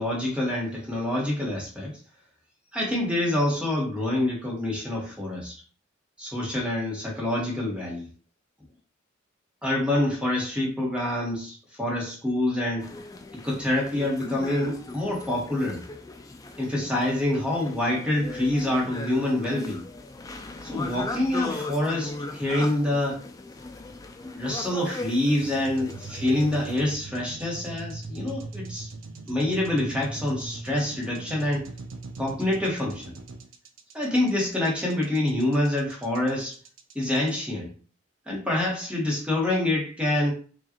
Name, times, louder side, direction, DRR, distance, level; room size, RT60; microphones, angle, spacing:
voice 1, 0.0-1.9 2.7-5.5 6.2-8.1 9.6-12.9 13.3-15.8 16.6-19.8 20.6-23.2 24.3-28.9 29.3-31.7 32.2-33.1 33.9-36.6 36.9-37.7 38.3-40.3, left 1 dB, 5° right, -3 dB, 1.1 m, -26 dB
sound 1, 12.8-26.9, left 2 dB, 15° left, 0.3 m, -38 dB
sound 2, 25.4-37.3, right 3 dB, 80° right, 0.5 m, -40 dB
4.7 x 2.4 x 2.9 m, 0.40 s
head